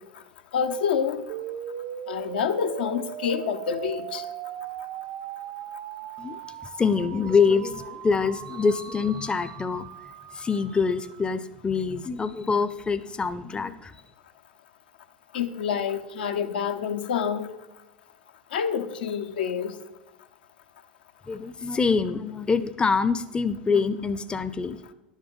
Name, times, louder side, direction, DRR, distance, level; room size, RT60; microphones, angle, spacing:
voice 1, 0.5-1.2 2.1-4.2 15.3-17.5 18.5-19.7, left 7 dB, 75° left, 7 dB, 0.9 m, -27 dB
sound 1, 1.3-11.3, right 12 dB, 55° right, 0.5 m, -39 dB
voice 2, 6.8-9.9 10.3-13.9 21.3-24.8, left 5 dB, 20° left, 12 dB, 0.6 m, -25 dB
11.0 x 7.3 x 5.6 m, 1.0 s
hypercardioid pair, 80°, 5 cm